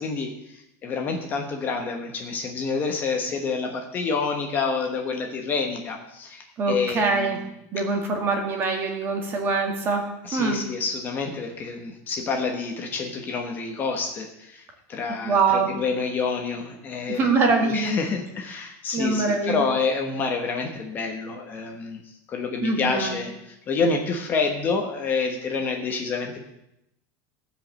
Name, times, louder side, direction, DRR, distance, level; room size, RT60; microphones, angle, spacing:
voice 1, 0.0-7.5 10.2-17.3 17.6-22.0 22.3-26.4, left 4 dB, 20° left, 3 dB, 1.1 m, -28 dB
voice 2, 6.6-7.4 7.7-10.1 10.3-10.6 15.3-15.7 17.1-17.9 18.9-19.6 22.6-23.2, right 4 dB, 25° right, 3 dB, 1.8 m, -23 dB
15.5 x 5.2 x 7.5 m, 0.84 s
supercardioid pair, 180°, 9 cm